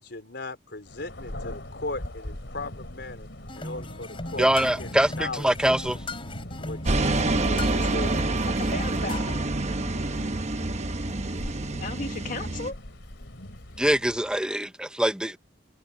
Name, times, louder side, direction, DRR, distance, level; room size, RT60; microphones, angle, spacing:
voice 1, 0.0-3.3 3.5-4.5 4.8-5.5 6.6-8.2, left 2 dB, 65° left, 4.5 m, -37 dB
Thunder, 0.8-14.5, left 1 dB, 80° left, 2.9 m, -41 dB
sound 1, 3.5-9.4, left 2 dB, 30° left, 3.4 m, -39 dB
voice 2, 4.4-6.0 13.8-15.4, right 1 dB, 5° right, 0.6 m, -24 dB
sound 2, 6.9-12.7, right 2 dB, 40° right, 1.0 m, -27 dB
voice 3, 8.5-10.0 11.7-12.8, left 3 dB, 50° left, 1.7 m, -36 dB
head